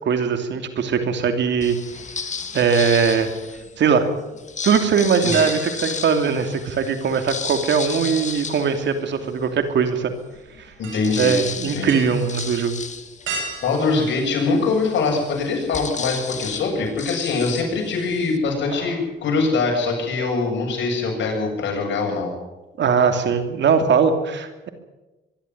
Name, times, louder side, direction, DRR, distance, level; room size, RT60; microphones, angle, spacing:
voice 1, 0.0-1.8 2.5-3.3 3.8-4.1 4.6-10.1 11.2-12.7 22.8-24.7, right 6 dB, 65° right, 7 dB, 2.8 m, -20 dB
sound 1, 1.6-3.8 4.4-9.5 10.0-10.1 10.4-18.4, left 5 dB, 35° left, 2.1 m, -33 dB
sound 2, 5.3-7.0 7.3-15.2 15.6-15.7 17.2-17.8 18.0-18.3 18.5-19.1 19.4-19.5, right 3 dB, 80° right, 8.0 m, -37 dB
voice 2, 10.8-12.0 13.6-22.3, left 4 dB, 70° left, 1 dB, 8.0 m, -23 dB
23.5 x 12.5 x 9.7 m, 1.1 s
cardioid pair, 90°, 20 cm